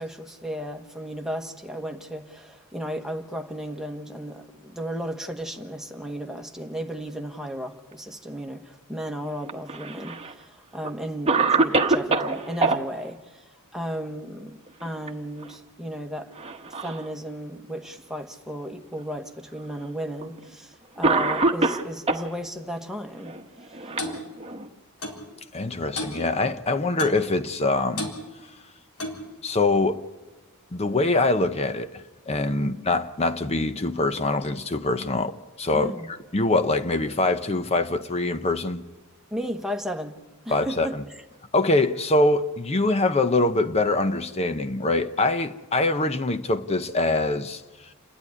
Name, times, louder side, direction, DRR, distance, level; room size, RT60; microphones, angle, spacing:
voice 1, 0.0-13.4 13.7-16.3 16.7-23.4 23.7-23.8 32.6-32.7 35.7-36.1 39.3-40.2 40.4-41.2, equal, ahead, 1.3 m, -34 dB
Cough, 9.4-10.3 10.8-10.9 11.3-12.8 14.7-15.1 15.4-15.5 16.4-17.1 17.8-17.9 19.0-19.1 20.2-20.4 21.0-22.3 23.2-24.7, right 3 dB, 25° right, 1.1 m, -24 dB
Clock, 24.0-24.2 25.0-25.2 26.0-26.2 27.0-27.2 28.0-28.2 29.0-29.3, left 2 dB, 80° left, 4.1 m, -32 dB
voice 2, 25.5-28.1 29.4-30.0 30.7-38.8 40.5-41.0 41.5-47.6, left 2 dB, 30° left, 0.7 m, -24 dB
29.0 x 11.5 x 9.8 m
head